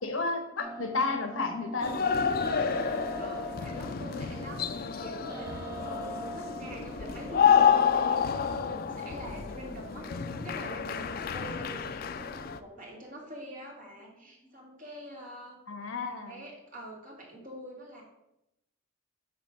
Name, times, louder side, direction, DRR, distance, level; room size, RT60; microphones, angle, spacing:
voice 1, 0.0-2.4 15.7-16.4, left 3 dB, 80° left, 7 dB, 1.0 m, -32 dB
sound 1, 0.6-14.5, right 1 dB, 20° right, 1.4 m, -45 dB
sound 2, 1.8-12.6, left 7 dB, 45° left, 0.4 m, -29 dB
voice 2, 3.2-5.5 5.9-15.6 16.1-18.0, right 1 dB, 40° right, -2 dB, 2.1 m, -45 dB
8.4 x 3.1 x 6.3 m, 0.86 s
head